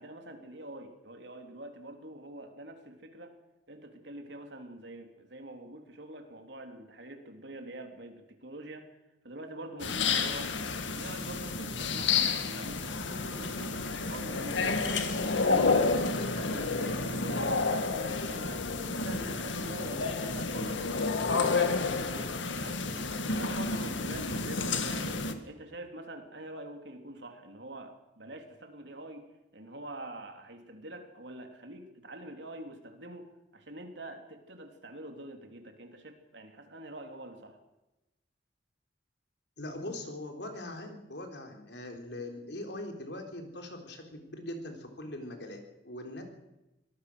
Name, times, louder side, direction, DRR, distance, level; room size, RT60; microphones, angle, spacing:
voice 1, 0.0-3.3 3.7-8.9 9.2-20.8 21.2-23.1 23.4-29.2 29.5-37.6, right 1 dB, 70° right, 4 dB, 3.5 m, -45 dB
sound 1, 9.8-25.3, left 4 dB, 85° left, 2.0 m, -30 dB
voice 2, 39.6-46.2, left 1 dB, 65° left, 4 dB, 4.1 m, -41 dB
24.5 x 18.5 x 6.4 m, 0.96 s
head